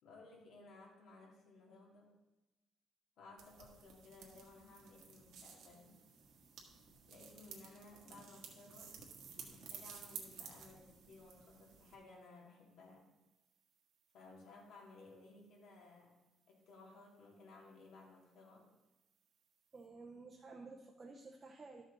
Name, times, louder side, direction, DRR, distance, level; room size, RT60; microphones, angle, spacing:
voice 1, 0.0-2.2 3.2-6.0 7.1-9.0 9.5-13.1 14.1-16.2 16.5-18.7, left 3 dB, 65° left, -1 dB, 2.2 m, -59 dB
sound 1, 3.4-12.0, right 6 dB, 75° right, 1.6 m, -54 dB
voice 2, 19.7-21.8, right 3 dB, 25° right, 0 dB, 0.7 m, -53 dB
12.5 x 6.3 x 4.0 m, 1.1 s
cardioid pair, 165°, 0 cm